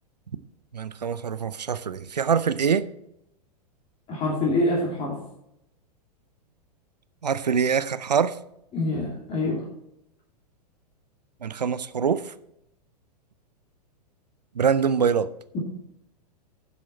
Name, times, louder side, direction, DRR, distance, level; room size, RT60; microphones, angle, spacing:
voice 1, 0.7-2.9 7.2-8.3 11.4-12.3 14.6-15.3, right 7 dB, 80° right, 15 dB, 0.6 m, -24 dB
voice 2, 4.1-5.2 8.7-9.6, left 2 dB, 30° left, -4 dB, 2.8 m, -25 dB
10.5 x 7.4 x 4.4 m, 0.81 s
figure-of-eight pair, 100°, 21 cm